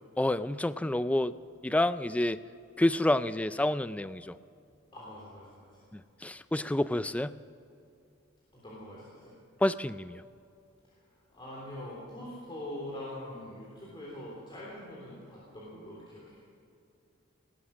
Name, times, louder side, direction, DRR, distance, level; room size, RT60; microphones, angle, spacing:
voice 1, 0.2-1.3 1.6-2.4 2.8-4.4 5.9-7.3 9.6-10.2, left 1 dB, 5° left, 14 dB, 0.3 m, -28 dB
voice 2, 4.9-5.7 8.5-9.3 10.9-11.0 11.3-16.4, left 1 dB, 25° left, -6 dB, 3.3 m, -43 dB
19.5 x 11.5 x 6.4 m, 2.5 s
head